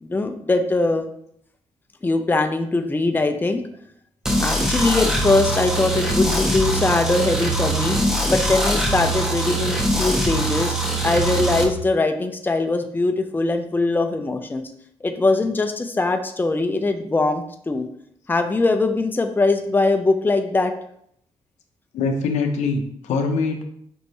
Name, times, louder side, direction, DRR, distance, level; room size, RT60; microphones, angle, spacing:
voice 1, 0.0-1.1 2.0-3.6 4.4-8.0 8.3-10.7 11.0-14.7 15.0-17.9 18.3-20.7, left 2 dB, 15° left, 6 dB, 0.5 m, -21 dB
sound 1, 4.2-11.6, right 1 dB, 5° right, 0.9 m, -22 dB
voice 2, 21.9-23.6, left 4 dB, 90° left, 5 dB, 0.6 m, -23 dB
5.4 x 3.0 x 2.7 m, 0.69 s
cardioid pair, 85°, 12 cm